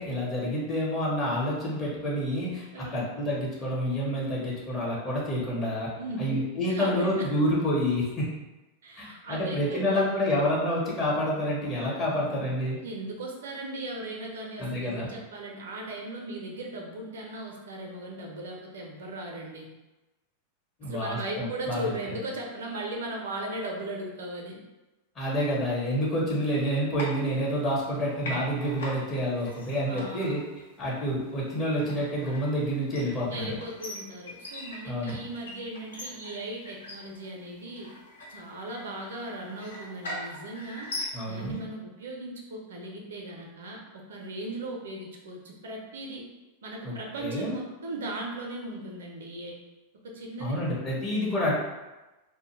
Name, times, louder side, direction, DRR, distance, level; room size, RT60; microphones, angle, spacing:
voice 1, 0.0-5.9 6.2-8.3 9.0-12.8 14.6-15.1 20.8-21.9 25.2-30.4 30.8-33.6 34.9-35.2 41.1-41.6 46.8-47.5 50.4-51.6, equal, 25° left, -5 dB, 0.8 m, -28 dB
voice 2, 2.7-3.1 6.0-6.4 6.7-7.3 8.8-10.4 12.8-19.7 20.8-24.6 29.9-30.4 33.3-37.9 38.3-40.9 41.2-46.2 46.6-49.6 50.0-50.6, right 1 dB, 65° right, 0 dB, 0.4 m, -37 dB
sound 1, 26.9-27.9 28.2-41.6, left 1 dB, 65° left, 0.6 m, -41 dB
2.2 x 2.1 x 3.0 m, 1.1 s
figure-of-eight pair, 90°, 0 cm